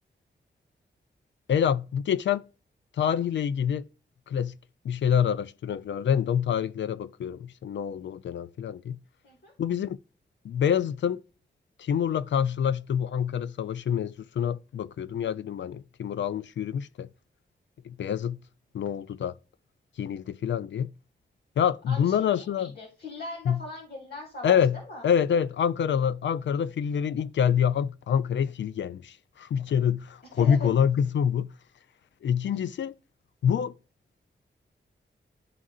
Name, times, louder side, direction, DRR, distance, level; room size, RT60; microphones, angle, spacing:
voice 1, 1.5-2.4 3.0-3.8 4.3-4.5 4.8-9.0 9.6-10.0 10.4-11.2 11.8-17.1 17.9-18.4 18.7-19.3 20.0-20.9 21.6-22.7 23.5-23.6 24.4-24.8 25.0-31.5 32.2-32.9 33.4-33.7, left 8 dB, 80° left, 0.4 m, -26 dB
voice 2, 21.9-25.1 30.4-30.7 32.4-32.6, left 2 dB, 60° left, 2.0 m, -40 dB
11.0 x 3.7 x 2.4 m
cardioid pair, 70°, 19 cm